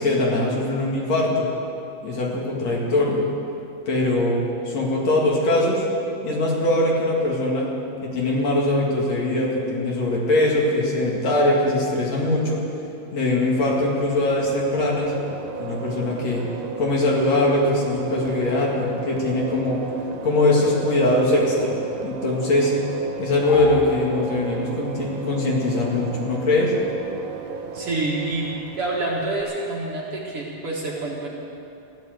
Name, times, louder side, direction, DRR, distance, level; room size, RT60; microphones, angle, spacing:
voice 1, 0.0-1.5 2.0-3.2 3.9-5.9 6.2-7.7 8.0-12.6 13.1-15.1 15.6-16.4 16.8-19.8 20.2-21.8 22.0-22.7 23.2-26.7, left 2 dB, 55° left, -3 dB, 3.2 m, -21 dB
sound 1, 13.5-29.4, right 4 dB, 75° right, 2.6 m, -35 dB
sound 2, 23.5-25.0, left 3 dB, 85° left, 3.2 m, -34 dB
voice 2, 27.7-31.3, right 2 dB, 45° right, -4 dB, 2.6 m, -27 dB
15.0 x 11.5 x 7.9 m, 2.8 s
omnidirectional pair, 3.8 m